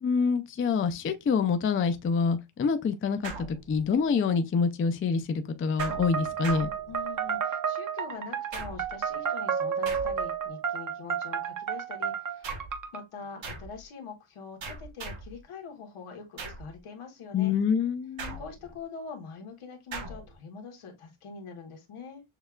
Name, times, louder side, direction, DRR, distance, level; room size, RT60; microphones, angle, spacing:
voice 1, 0.0-6.7 17.3-18.4, left 5 dB, 30° left, 0.3 m, -26 dB
sound 1, 3.2-4.1 5.8-7.3 8.5-9.1 9.9-10.5 12.4-12.9 13.4-13.8 14.6-15.4 16.4-16.8 18.2-18.8 19.9-20.3, right 3 dB, 60° right, 1.2 m, -40 dB
sound 2, 5.8-13.0, right 7 dB, 40° right, 0.7 m, -31 dB
voice 2, 6.9-12.5 12.9-17.5 18.3-22.2, left 5 dB, 85° left, 1.3 m, -44 dB
6.4 x 2.3 x 2.2 m
wide cardioid pair, 145°, 50 cm